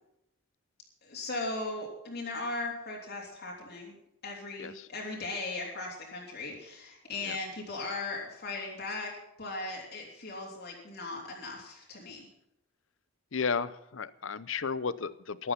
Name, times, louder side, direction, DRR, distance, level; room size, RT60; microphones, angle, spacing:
voice 1, 1.0-4.0 4.2-9.1 9.4-12.3, left 2 dB, 50° left, -2 dB, 3.3 m, -38 dB
voice 2, 13.3-15.5, left 5 dB, 65° left, 17 dB, 0.7 m, -33 dB
14.0 x 12.0 x 5.9 m, 0.81 s
head